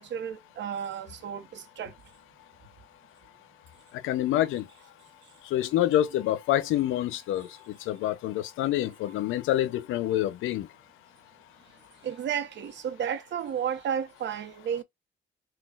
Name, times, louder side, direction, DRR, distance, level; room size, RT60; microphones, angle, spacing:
voice 1, 0.0-1.9 12.0-14.8, right 8 dB, 65° right, 1.0 m, -32 dB
voice 2, 4.0-4.6 5.5-7.5 7.9-10.7, left 13 dB, 90° left, 0.6 m, -26 dB
5.8 x 2.4 x 2.4 m
cardioid pair, 90°, 20 cm